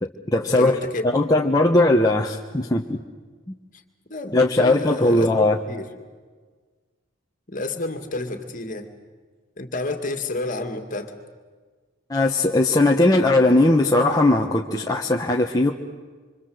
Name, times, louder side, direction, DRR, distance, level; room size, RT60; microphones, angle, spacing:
voice 1, 0.0-0.8 1.0-3.0 3.5-3.6 4.3-5.6 12.1-15.7, left 2 dB, 20° left, 0 dB, 1.1 m, -19 dB
voice 2, 0.6-1.0 3.7-3.8 4.1-5.9 7.5-8.9 9.6-11.1, left 2 dB, 40° left, 7 dB, 2.4 m, -30 dB
26.5 x 26.0 x 8.0 m, 1.5 s
head